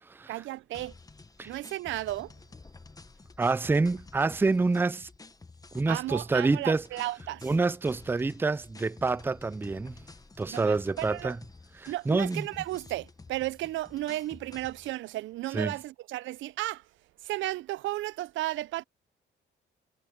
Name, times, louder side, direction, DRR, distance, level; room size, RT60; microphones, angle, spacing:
voice 1, 0.3-0.9 1.5-2.3 5.9-7.5 10.5-11.3 11.9-16.9 17.2-18.8, right 16 dB, 75° right, 0.4 m, -34 dB
sound 1, 0.7-15.0, left 3 dB, 20° left, 1.1 m, -51 dB
voice 2, 3.4-5.1 5.7-6.8 7.4-10.0 10.4-11.4 11.8-12.5 15.5-15.7, right 3 dB, 10° right, 0.4 m, -27 dB
cardioid pair, 90°, 20 cm